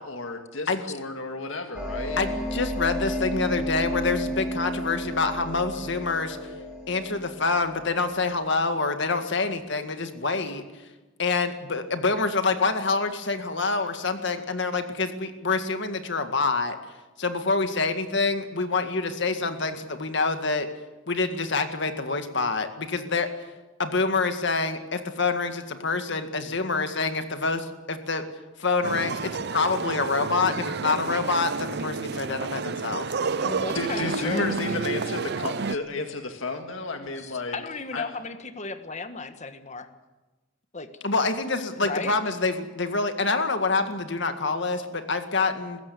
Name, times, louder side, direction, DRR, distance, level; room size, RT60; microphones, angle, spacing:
voice 1, 0.0-2.4 33.7-37.6 37.9-38.1, left 3 dB, 80° left, 5 dB, 1.9 m, -32 dB
sound 1, 1.7-8.3, equal, 5° right, 6.8 m, -32 dB
voice 2, 2.2-6.4 6.9-10.6 11.2-16.8 17.2-20.7 21.1-23.3 23.8-28.2 28.6-33.3 41.0-45.8, left 3 dB, 65° left, 8 dB, 2.0 m, -26 dB
sound 2, 28.8-35.7, right 5 dB, 55° right, 0.6 m, -30 dB
voice 3, 33.3-34.5 37.2-39.9 40.7-40.9 41.8-42.1, left 3 dB, 35° left, 9 dB, 1.5 m, -35 dB
20.5 x 15.5 x 9.6 m, 1.1 s
head